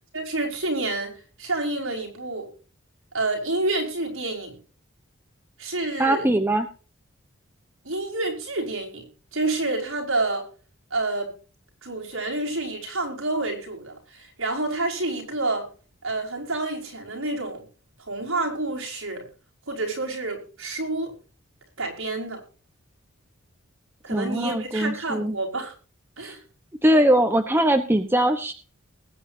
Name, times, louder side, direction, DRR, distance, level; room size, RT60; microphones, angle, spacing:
voice 1, 0.1-2.5 3.1-4.6 5.6-6.3 7.8-9.1 9.3-10.5 10.9-11.3 11.8-15.7 16.0-17.7 18.1-19.3 19.7-21.1 21.8-22.4 24.0-25.7 26.2-26.4, right 2 dB, 65° right, 0 dB, 5.4 m, -28 dB
voice 2, 6.0-6.7 24.1-25.4 26.2-26.3 26.8-28.5, right 1 dB, 10° right, 6 dB, 1.0 m, -21 dB
20.5 x 9.0 x 2.8 m, 0.37 s
head